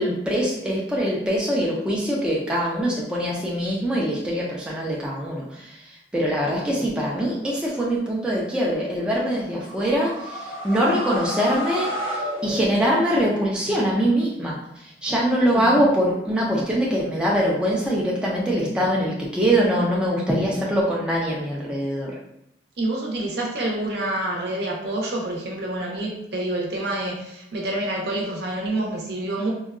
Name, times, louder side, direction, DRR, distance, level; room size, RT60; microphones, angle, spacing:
voice 1, 0.0-22.2, equal, 5° right, -5 dB, 0.4 m, -23 dB
sound 1, 9.5-13.3, equal, 30° right, 0.9 m, -31 dB
voice 2, 22.8-29.5, right 1 dB, 65° right, -1 dB, 0.7 m, -27 dB
3.7 x 2.2 x 2.4 m, 0.79 s
head